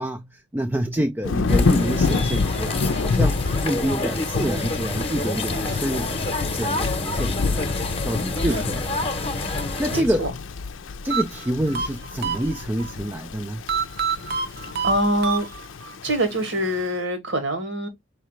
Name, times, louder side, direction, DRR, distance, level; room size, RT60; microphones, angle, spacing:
voice 1, 0.0-6.2 6.5-7.7 8.0-9.2 9.5-10.3 11.0-13.6, right 1 dB, 10° right, 0.4 m, -27 dB
Thunder / Rain, 1.2-16.8, left 4 dB, 90° left, 0.5 m, -28 dB
sound 1, 1.5-10.0, left 2 dB, 30° left, 0.9 m, -28 dB
voice 2, 9.9-10.3 14.8-15.5 16.0-17.9, equal, 80° right, 1.8 m, -24 dB
sound 2, 11.1-12.9 13.7-15.9, right 6 dB, 55° right, 0.8 m, -28 dB
4.9 x 3.2 x 3.1 m
head